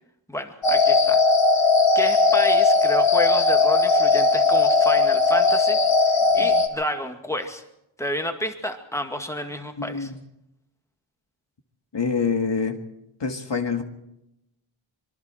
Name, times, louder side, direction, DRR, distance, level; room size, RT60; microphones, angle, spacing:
voice 1, 0.3-1.2 1.9-7.6 8.0-10.1, equal, 5° left, 5 dB, 2.1 m, -30 dB
sound 1, 0.6-6.7, left 3 dB, 75° left, 1.8 m, -18 dB
voice 2, 9.8-10.2 11.9-12.8 13.2-13.8, left 5 dB, 60° left, 5 dB, 1.9 m, -25 dB
25.5 x 22.5 x 4.5 m, 0.87 s
wide cardioid pair, 85°, 49 cm